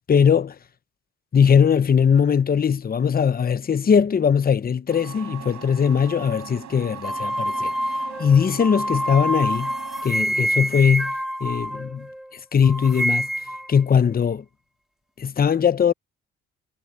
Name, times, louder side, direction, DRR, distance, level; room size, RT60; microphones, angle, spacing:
voice 1, 0.1-0.6 1.3-7.7 8.2-9.7 10.0-11.1 11.4-13.3 13.7-14.4 15.2-15.9, left 7 dB, 30° left, 0.8 m, -20 dB
sound 1, 4.9-10.0, right 10 dB, 65° right, 6.7 m, -40 dB
sound 2, 7.0-12.3 12.6-13.7, equal, ahead, 2.5 m, -26 dB
cardioid pair, 90°, 30 cm